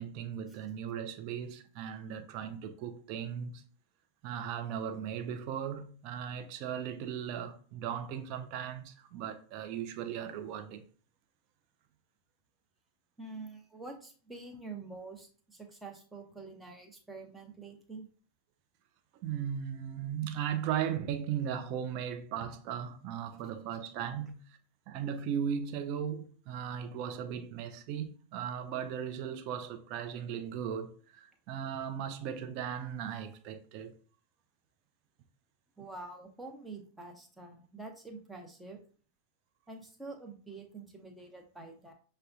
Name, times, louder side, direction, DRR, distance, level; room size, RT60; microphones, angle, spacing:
voice 1, 0.0-3.6 4.2-10.8 19.2-24.4 24.9-34.0, right 8 dB, 45° right, 0.5 m, -37 dB
voice 2, 13.2-18.1 35.8-38.8 39.7-41.9, right 3 dB, 5° right, 0.8 m, -46 dB
6.5 x 2.2 x 2.6 m
figure-of-eight pair, 90°, 0 cm